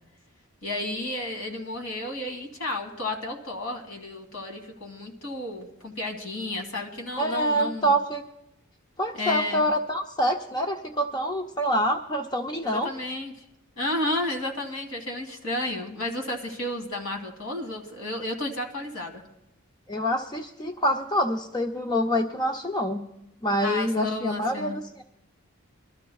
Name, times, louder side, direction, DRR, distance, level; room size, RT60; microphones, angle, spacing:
voice 1, 0.6-7.9 9.1-9.7 12.6-13.3 13.8-19.2 23.6-24.8, left 1 dB, 75° left, 4 dB, 2.0 m, -32 dB
voice 2, 7.2-8.2 9.0-12.9 19.9-23.0 23.4-25.0, equal, 20° left, 4 dB, 0.5 m, -26 dB
24.0 x 13.0 x 2.3 m, 0.85 s
head